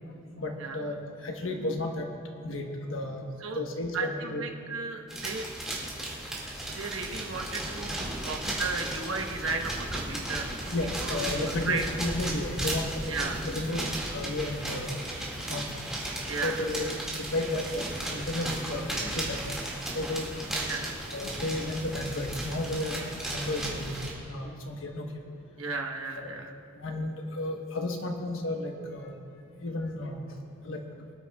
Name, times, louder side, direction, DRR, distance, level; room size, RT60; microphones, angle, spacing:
voice 1, 0.4-2.1 2.4-3.2 3.5-4.4 10.2-10.3 10.7-13.0 13.4-15.0 15.5-15.6 16.3-17.8 18.1-19.5 19.9-20.6 21.1-24.0 24.2-25.1 26.2-26.3 26.8-29.1 29.6-30.2 30.6-30.8, left 1 dB, 75° left, 2 dB, 1.2 m, -33 dB
voice 2, 3.9-5.5 5.9-6.0 6.7-11.8 13.1-13.4 16.3-16.7 20.6-21.0 25.6-26.5, right 4 dB, 85° right, 2 dB, 1.1 m, -35 dB
sound 1, 5.1-24.1, right 1 dB, 5° right, 2.1 m, -35 dB
23.5 x 9.4 x 2.4 m, 2.5 s
head